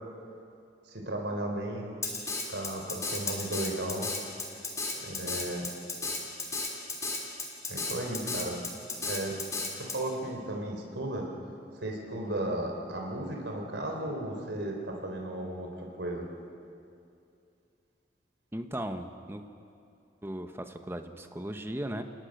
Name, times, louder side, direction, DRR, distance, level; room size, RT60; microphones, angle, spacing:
voice 1, 0.9-2.0 2.5-4.1 5.0-5.7 7.7-8.6 9.0-9.4 9.7-11.3 11.8-16.3, right 1 dB, 85° right, 1 dB, 4.0 m, -35 dB
Drum kit, 2.0-10.0, left 3 dB, 20° left, 3.1 m, -33 dB
voice 2, 18.5-19.4 20.2-22.0, right 1 dB, 15° right, 6 dB, 1.1 m, -37 dB
28.0 x 19.0 x 6.7 m, 2.5 s
head